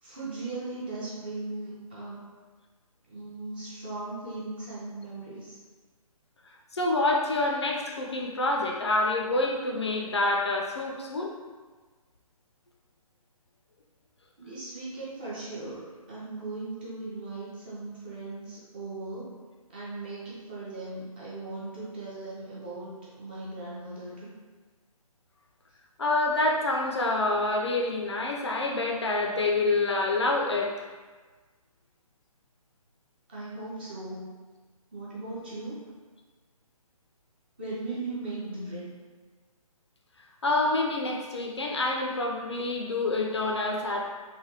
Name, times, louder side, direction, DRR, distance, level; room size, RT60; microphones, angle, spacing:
voice 1, 0.0-2.2 3.1-5.6 14.4-19.3 19.7-24.3 33.3-34.2 34.9-35.8 37.6-38.9, right 2 dB, 15° right, -8 dB, 0.4 m, -38 dB
voice 2, 6.7-11.3 26.0-30.7 40.4-44.1, left 2 dB, 50° left, 0 dB, 0.4 m, -27 dB
3.2 x 2.1 x 2.7 m, 1.4 s
figure-of-eight pair, 140°, 19 cm